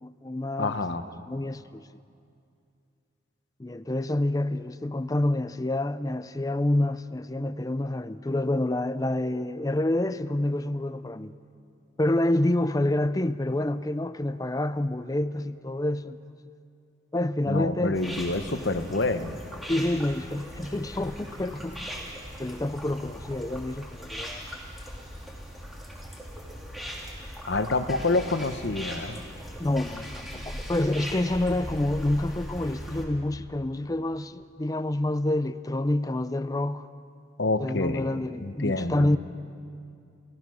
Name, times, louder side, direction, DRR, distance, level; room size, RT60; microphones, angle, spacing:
voice 1, 0.0-0.7 1.3-1.8 3.6-11.3 12.0-16.2 17.1-18.0 19.7-22.0 22.4-24.4 29.6-36.9 37.6-39.2, left 1 dB, 20° left, 0.5 m, -28 dB
voice 2, 0.6-1.0 17.5-19.4 27.5-29.2 37.4-38.1 38.4-39.1, left 2 dB, 65° left, 1.0 m, -27 dB
sound 1, 17.9-33.0, equal, ahead, 2.8 m, -39 dB
29.5 x 16.0 x 6.3 m
head